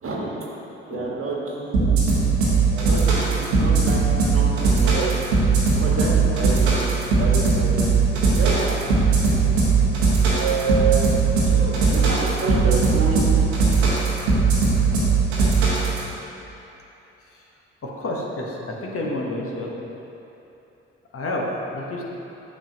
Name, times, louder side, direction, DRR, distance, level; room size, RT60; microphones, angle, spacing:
voice 1, 0.0-0.4 0.9-2.0 2.7-5.2 5.6-6.8 7.1-7.9 8.4-9.2 10.2-13.7, right 3 dB, 45° right, -3 dB, 1.4 m, -28 dB
sound 1, 1.7-16.0, right 4 dB, 85° right, 1.2 m, -18 dB
voice 2, 17.8-19.7 21.1-21.5 21.7-22.0, left 1 dB, 45° left, -2 dB, 1.1 m, -30 dB
8.8 x 5.4 x 2.9 m, 3.0 s
hypercardioid pair, 45°, 31 cm